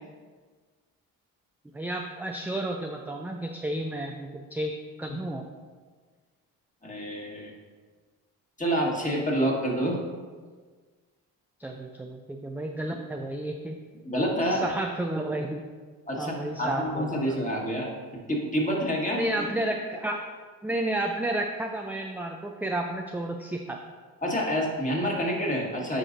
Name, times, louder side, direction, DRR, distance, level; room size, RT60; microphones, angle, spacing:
voice 1, 1.7-4.7 5.0-5.4 11.6-13.8 14.5-15.6 16.2-17.2 19.1-20.2 20.6-23.8, right 1 dB, 5° right, 2 dB, 0.4 m, -31 dB
voice 2, 6.8-7.5 8.6-10.0 14.0-14.7 16.1-19.5 24.2-26.0, equal, 20° left, -2 dB, 1.8 m, -28 dB
9.9 x 4.8 x 2.7 m, 1.5 s
hypercardioid pair, 60°, 41 cm